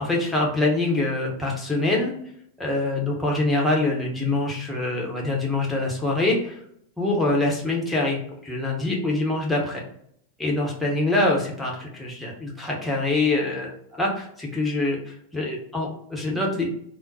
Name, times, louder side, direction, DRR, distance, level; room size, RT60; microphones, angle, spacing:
voice 1, 0.0-2.1 2.6-6.5 7.0-9.8 10.4-16.7, left 2 dB, 5° left, -3 dB, 0.9 m, -25 dB
3.6 x 2.1 x 2.7 m, 0.68 s
figure-of-eight pair, 90°, 0 cm